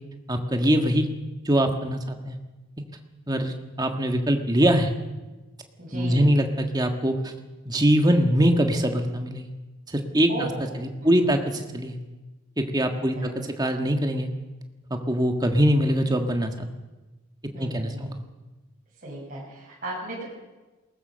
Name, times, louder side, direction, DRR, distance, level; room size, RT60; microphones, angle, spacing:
voice 1, 0.3-1.1 1.4-2.4 3.3-4.9 5.9-7.3 7.6-9.5 9.9-10.5 10.8-12.0 12.6-14.3 14.9-16.7 17.6-18.2, equal, 20° right, 5 dB, 1.6 m, -23 dB
voice 2, 5.8-6.3 10.3-11.3 13.2-13.3 17.5-18.1 19.0-20.2, right 1 dB, 40° right, -4 dB, 6.7 m, -36 dB
21.5 x 19.5 x 6.5 m, 1.2 s
head